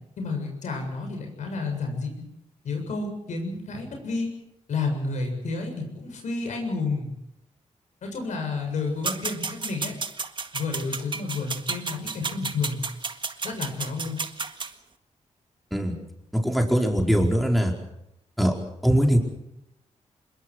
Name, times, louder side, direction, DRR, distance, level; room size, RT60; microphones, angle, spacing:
voice 1, 0.2-2.2 2.6-4.3 4.7-7.1 8.0-9.9 10.5-12.8 13.4-14.2, left 3 dB, 85° left, 3 dB, 7.4 m, -30 dB
sound 1, 9.0-14.7, right 4 dB, 40° right, 1.7 m, -32 dB
voice 2, 16.3-17.7 18.4-18.5 18.8-19.2, equal, ahead, 1 dB, 4.7 m, -21 dB
26.0 x 22.0 x 6.4 m, 0.83 s
cardioid pair, 90°, 12 cm